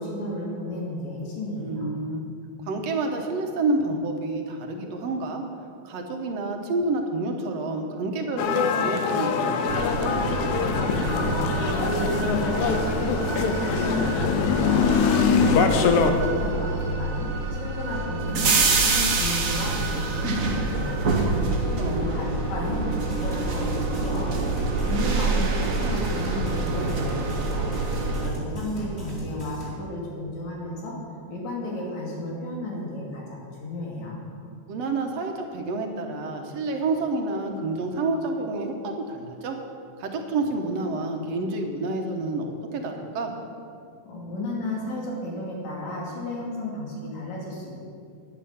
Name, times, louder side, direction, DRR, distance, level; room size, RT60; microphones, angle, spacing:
voice 1, 0.0-1.9 10.6-14.9 15.4-17.3 17.6-18.5 18.8-21.3 21.8-24.5 24.9-27.7 28.2-31.0 31.3-34.2 44.1-47.7, left 1 dB, 70° left, -3 dB, 3.8 m, -33 dB
voice 2, 1.6-2.2 2.7-5.4 5.8-9.8 20.9-22.2 34.7-39.6 40.0-43.3, right 2 dB, 65° right, 3 dB, 2.1 m, -29 dB
sound 1, 8.4-16.1, left 6 dB, 90° left, 2.3 m, -23 dB
sound 2, 9.7-28.3, right 3 dB, 80° right, 0.7 m, -26 dB
sound 3, 23.0-29.7, right 2 dB, 20° left, 3.5 m, -38 dB
10.5 x 10.0 x 7.0 m, 2.4 s
omnidirectional pair, 3.4 m